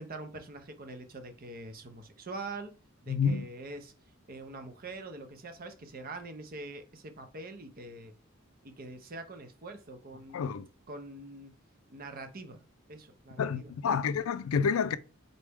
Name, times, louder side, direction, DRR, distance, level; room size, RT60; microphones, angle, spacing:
voice 1, 0.0-2.7 3.0-3.9 4.3-8.2 8.6-10.5 10.9-11.5 11.9-12.6 12.9-13.7, right 2 dB, 45° right, 0.7 m, -44 dB
voice 2, 3.1-3.5 10.3-10.7 13.4-15.0, left 6 dB, 80° left, 0.4 m, -29 dB
4.0 x 3.3 x 3.4 m
head